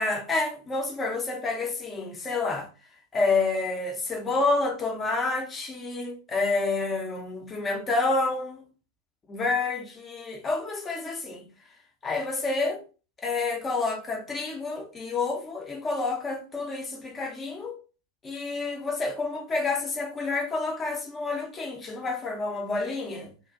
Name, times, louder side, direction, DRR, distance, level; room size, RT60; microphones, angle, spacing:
voice 1, 0.0-2.7 3.1-8.6 9.3-11.5 12.0-12.8 13.2-17.8 18.2-23.3, left 3 dB, 20° left, 0.6 m, -29 dB
2.4 x 2.1 x 2.5 m
figure-of-eight pair, 90°, 0 cm